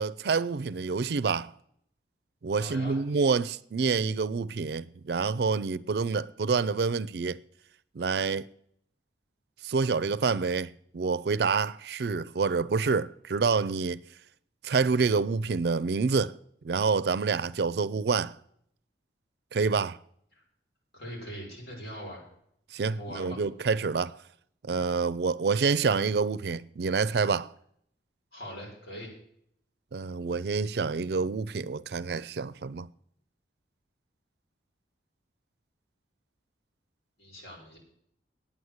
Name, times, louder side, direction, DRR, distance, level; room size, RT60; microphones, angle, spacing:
voice 1, 0.0-1.5 2.4-7.4 8.0-8.5 9.6-14.0 14.6-16.3 16.6-18.3 19.5-20.0 22.7-24.2 24.7-27.5 29.9-32.9, right 4 dB, 60° right, 0.4 m, -27 dB
voice 2, 2.6-3.0 20.3-20.4 20.9-22.3 22.9-23.4 28.3-29.2 37.2-37.8, equal, 60° left, 5.9 m, -41 dB
9.4 x 9.0 x 8.0 m
head